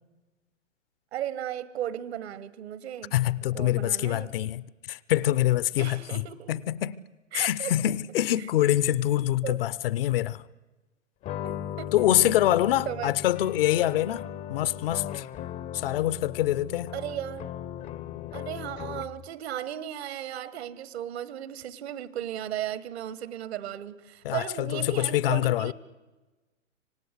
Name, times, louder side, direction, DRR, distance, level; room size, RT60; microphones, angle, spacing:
voice 1, 1.1-3.2 3.5-4.3 5.8-6.5 7.3-7.7 8.4-8.5 9.4-9.6 11.4-12.3 12.8-13.1 16.9-17.5 18.3-25.7, right 11 dB, 60° right, 1.4 m, -36 dB
voice 2, 3.1-7.0 7.3-10.4 11.9-15.3 15.7-16.9 24.2-25.7, left 13 dB, 50° left, 0.8 m, -25 dB
sound 1, 11.2-19.3, left 10 dB, 20° left, 0.7 m, -38 dB
25.5 x 18.5 x 8.2 m
figure-of-eight pair, 115°, 37 cm